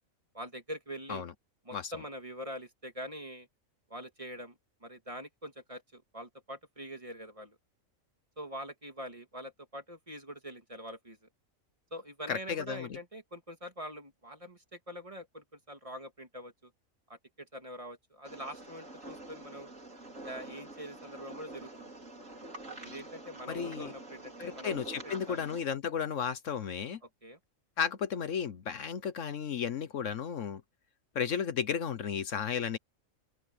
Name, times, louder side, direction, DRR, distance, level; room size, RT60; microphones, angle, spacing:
voice 1, 0.3-1.2 1.6-3.5 3.9-7.6 8.4-11.2 11.9-16.7 17.1-19.7 20.2-21.9 22.7-24.8 25.0-25.5 27.2-27.4, equal, 25° right, 2.4 m, -44 dB
voice 2, 12.3-12.9 23.5-23.9 24.4-27.0 27.8-30.6 31.1-32.8, left 7 dB, 70° left, 1.2 m, -34 dB
sound 1, 18.2-25.6, right 2 dB, 70° right, 5.2 m, -46 dB
open air
omnidirectional pair, 1.4 m